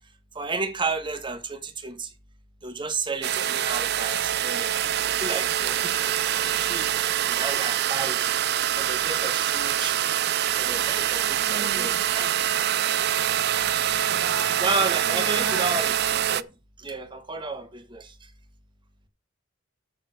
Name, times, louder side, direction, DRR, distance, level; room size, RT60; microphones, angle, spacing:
voice 1, 0.3-2.1 2.6-4.9 5.2-6.9 7.2-8.2 8.8-10.0 10.6-12.3 14.5-16.5 16.8-18.1, right 3 dB, 25° right, 1.3 m, -32 dB
sound 1, 3.2-16.4, right 11 dB, 55° right, 0.4 m, -25 dB
voice 2, 11.4-12.0 14.1-14.6 15.0-15.7, right 3 dB, 80° right, 1.3 m, -35 dB
7.5 x 6.8 x 6.3 m
head